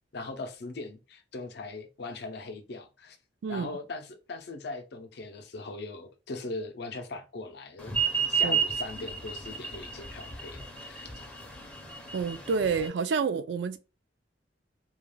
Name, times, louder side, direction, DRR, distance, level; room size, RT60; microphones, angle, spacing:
voice 1, 0.1-3.2 3.5-8.0 8.3-11.2, left 3 dB, 60° left, 0.5 m, -40 dB
sound 1, 7.9-12.9, right 6 dB, 10° left, 0.5 m, -30 dB
voice 2, 12.1-13.8, right 5 dB, 70° right, 0.3 m, -29 dB
2.3 x 2.2 x 3.1 m
head